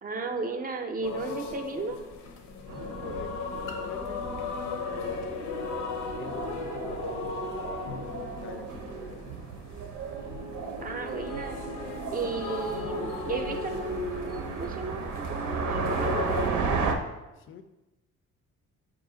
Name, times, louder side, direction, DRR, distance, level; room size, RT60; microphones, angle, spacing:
voice 1, 0.0-2.0 10.8-11.6 12.1-16.8, right 3 dB, 30° right, 6 dB, 0.5 m, -34 dB
firenze church choir, 1.0-16.5, left 4 dB, 80° left, 0.7 m, -36 dB
voice 2, 2.7-5.3 6.2-9.4 17.4-17.6, left 7 dB, 45° left, 9 dB, 0.4 m, -46 dB
sound 1, 2.7-16.9, right 5 dB, 80° right, 0.6 m, -35 dB
4.8 x 2.5 x 3.7 m, 1.0 s
cardioid pair, 90°, 30 cm